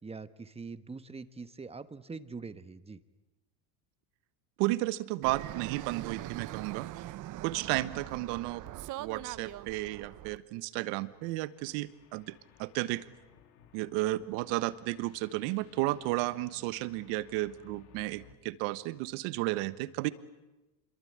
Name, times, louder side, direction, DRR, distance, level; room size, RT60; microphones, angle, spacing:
voice 1, 0.0-3.0, right 4 dB, 15° right, 12 dB, 1.2 m, -43 dB
voice 2, 4.6-6.9 7.4-8.6 9.0-13.0 13.7-20.1, right 18 dB, 70° right, 15 dB, 1.4 m, -33 dB
Fixed-wing aircraft airplane, 5.2-10.4, right 15 dB, 40° right, 0.8 m, -42 dB
sound 1, 10.6-18.4, left 8 dB, 75° left, 2.8 m, -60 dB
26.5 x 22.5 x 8.8 m, 1.1 s
supercardioid pair, 115°, 45 cm